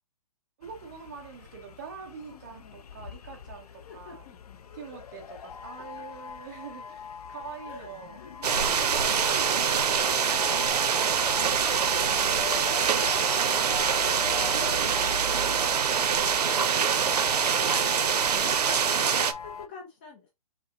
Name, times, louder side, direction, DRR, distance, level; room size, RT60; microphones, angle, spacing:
sound 1, 0.6-19.7, left 6 dB, 75° left, 0.6 m, -41 dB
voice 1, 0.6-4.3 4.7-8.2 8.8-10.0 14.5-15.0 15.4-16.4 16.7-17.8 18.5-18.6, right 6 dB, 30° right, 0.9 m, -44 dB
voice 2, 2.3-2.7 3.8-4.6 5.3-5.4 7.7-7.9 8.2-8.3 8.6-8.9 9.6-10.0 12.8-15.4 16.4-20.3, left 4 dB, 15° left, 0.5 m, -47 dB
sound 2, 8.4-19.3, right 7 dB, 85° right, 0.7 m, -25 dB
5.6 x 2.0 x 3.8 m
hypercardioid pair, 170°, 20 cm